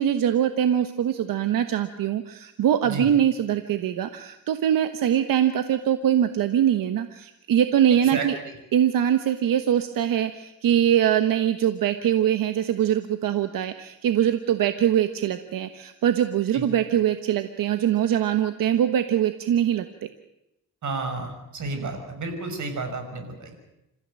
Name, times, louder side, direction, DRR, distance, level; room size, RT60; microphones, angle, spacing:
voice 1, 0.0-8.4 8.7-20.1, right 10 dB, 85° right, 9 dB, 1.3 m, -23 dB
voice 2, 8.1-8.5 16.5-16.7 20.8-23.5, right 3 dB, 60° right, 6 dB, 6.1 m, -31 dB
27.5 x 15.0 x 8.9 m, 0.87 s
cardioid pair, 100°, 33 cm